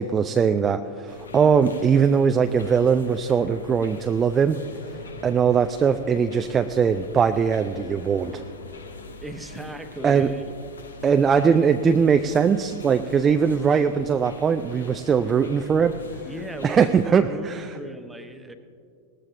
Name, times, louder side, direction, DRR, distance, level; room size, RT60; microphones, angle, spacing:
voice 1, 0.0-4.6 5.2-8.4 10.0-10.3 11.0-16.0 16.6-17.7, right 6 dB, 20° right, 8 dB, 0.4 m, -20 dB
sound 1, 1.1-17.1, left 3 dB, 70° left, 1.0 m, -43 dB
voice 2, 9.2-10.5 16.2-18.5, right 1 dB, 5° right, 7 dB, 1.0 m, -37 dB
19.0 x 14.5 x 2.6 m, 2.3 s
figure-of-eight pair, 90°, 0 cm